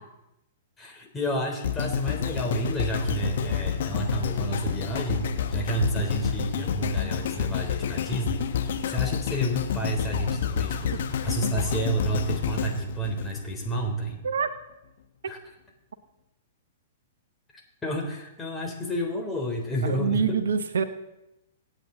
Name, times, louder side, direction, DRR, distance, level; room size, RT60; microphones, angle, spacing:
voice 1, 0.8-11.0 11.2-14.2 15.3-15.4 17.8-20.4, right 1 dB, 15° left, 1 dB, 3.6 m, -30 dB
sound 1, 1.6-13.8 14.4-14.5, left 8 dB, 60° left, 1.8 m, -29 dB
voice 2, 19.8-20.8, right 6 dB, 70° right, 10 dB, 1.1 m, -25 dB
25.0 x 8.9 x 3.9 m, 0.91 s
figure-of-eight pair, 110°, 0 cm